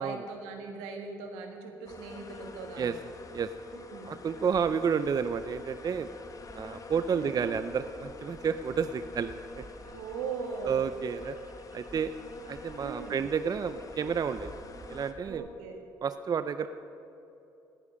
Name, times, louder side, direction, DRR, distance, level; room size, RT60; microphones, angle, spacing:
voice 1, 0.0-3.0 3.7-4.2 7.1-7.4 9.9-10.8 12.8-13.2 15.3-15.8, right 4 dB, 85° right, 3 dB, 1.8 m, -40 dB
sound 1, 1.9-15.1, left 4 dB, 40° left, 1.4 m, -47 dB
voice 2, 4.1-6.1 6.5-9.6 10.6-11.4 11.7-12.1 12.5-14.5 14.9-15.4 16.0-16.7, right 6 dB, 45° right, 11 dB, 0.5 m, -30 dB
sound 2, 4.5-15.3, right 2 dB, 20° right, 2.2 m, -53 dB
18.5 x 9.5 x 6.3 m, 2.9 s
hypercardioid pair, 55°, 9 cm